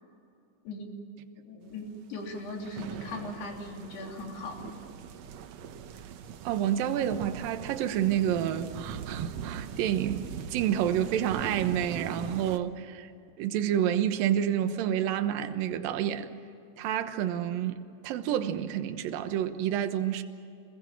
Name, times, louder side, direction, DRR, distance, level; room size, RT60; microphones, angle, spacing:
voice 1, 1.4-4.8, left 2 dB, 85° left, 5.2 m, -39 dB
sound 1, 2.2-12.6, right 8 dB, 85° right, 1.5 m, -40 dB
voice 2, 6.4-13.1 13.4-16.3 16.8-20.2, right 10 dB, 70° right, 2.7 m, -29 dB
26.5 x 21.5 x 7.5 m
omnidirectional pair, 4.6 m